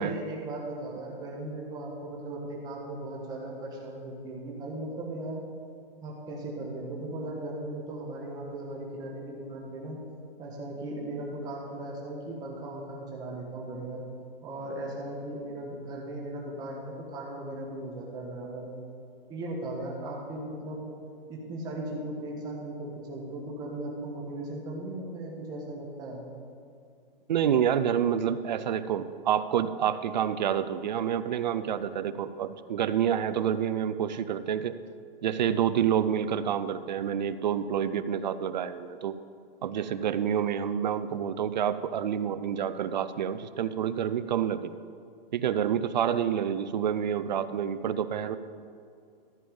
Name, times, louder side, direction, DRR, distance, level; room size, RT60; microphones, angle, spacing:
voice 1, 0.0-5.4 6.0-10.0 10.4-14.0 14.4-18.7 19.3-20.9 21.3-26.2, right 1 dB, 15° right, -2 dB, 1.4 m, -37 dB
voice 2, 27.3-34.7 35.2-39.2 39.6-44.7 45.3-48.4, right 9 dB, 50° right, 13 dB, 0.5 m, -28 dB
14.0 x 7.0 x 5.2 m, 2.4 s
hypercardioid pair, 165°, 29 cm